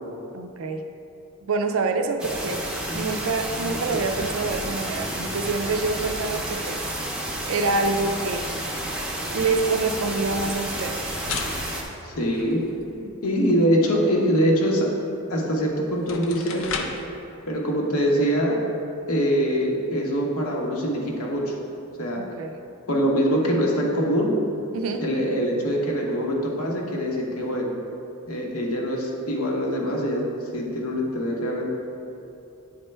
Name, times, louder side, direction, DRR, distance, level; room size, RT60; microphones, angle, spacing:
voice 1, 0.3-0.8 1.4-2.6 2.9-6.8 7.5-8.5 9.3-11.1 13.0-13.2 22.2-22.6 24.7-25.1, right 3 dB, 70° right, 6 dB, 0.4 m, -26 dB
sound 1, 2.2-11.8, right 1 dB, 5° right, 0.6 m, -30 dB
sound 2, 10.6-13.0 15.4-15.5 15.9-17.1, left 4 dB, 60° left, 0.5 m, -35 dB
voice 2, 12.0-12.6 13.2-14.9 15.3-16.9 17.5-18.6 19.1-21.5 22.0-22.2 22.9-24.3 25.0-27.8 28.3-30.2 30.5-31.7, equal, 85° left, -1 dB, 1.1 m, -23 dB
9.0 x 4.3 x 3.3 m, 2.8 s
head